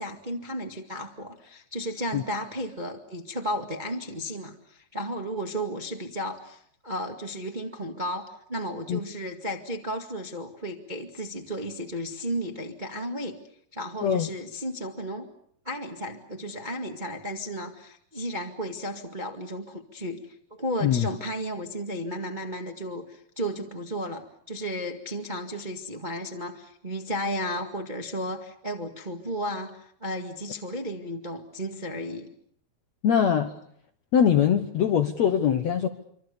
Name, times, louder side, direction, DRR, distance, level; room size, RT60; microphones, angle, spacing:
voice 1, 0.0-13.4 13.7-15.3 15.6-32.3, equal, 25° right, 3 dB, 1.0 m, -34 dB
voice 2, 33.0-33.5 34.1-35.9, left 8 dB, 65° left, 7 dB, 1.8 m, -22 dB
27.0 x 25.5 x 6.9 m, 0.67 s
omnidirectional pair, 4.5 m